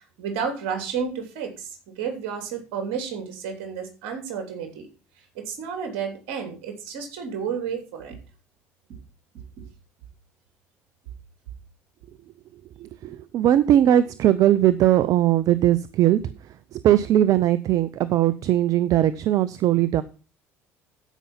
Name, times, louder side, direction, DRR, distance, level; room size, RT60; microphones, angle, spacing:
voice 1, 0.0-4.9 5.3-8.2, right 6 dB, 75° right, 5 dB, 3.0 m, -31 dB
voice 2, 12.8-16.2 16.7-20.0, right 12 dB, 60° right, 15 dB, 0.6 m, -19 dB
13.5 x 5.5 x 5.6 m, 0.34 s
hypercardioid pair, 70°, 7 cm